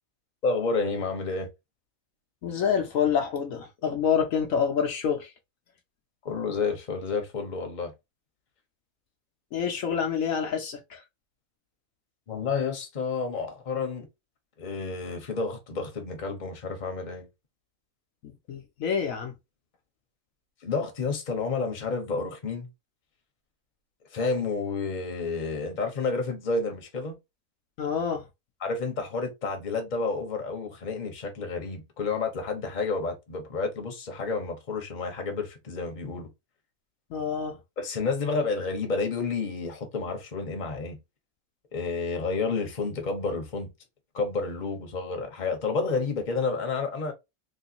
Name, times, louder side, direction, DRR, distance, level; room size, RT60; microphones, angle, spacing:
voice 1, 0.4-1.5 6.2-7.9 12.3-14.1 14.6-17.3 20.6-22.7 24.1-27.2 28.6-36.3 37.8-41.0 41.7-43.7 44.1-47.1, left 4 dB, 35° left, 1.0 m, -30 dB
voice 2, 2.4-5.3 9.5-11.0 18.2-19.3 27.8-28.3 37.1-37.6, left 7 dB, 70° left, 1.1 m, -27 dB
3.2 x 3.1 x 2.8 m
omnidirectional pair, 1.5 m